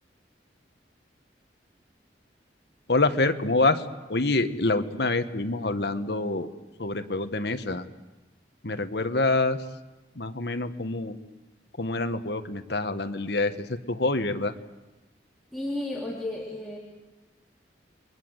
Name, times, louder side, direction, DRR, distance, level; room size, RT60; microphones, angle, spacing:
voice 1, 2.9-3.8 4.1-6.5 6.8-7.8 8.6-9.6 10.1-11.2 11.8-14.5, left 2 dB, 70° left, 9 dB, 1.5 m, -26 dB
voice 2, 15.5-16.8, left 1 dB, ahead, -5 dB, 3.6 m, -33 dB
30.0 x 22.5 x 8.1 m, 1.1 s
head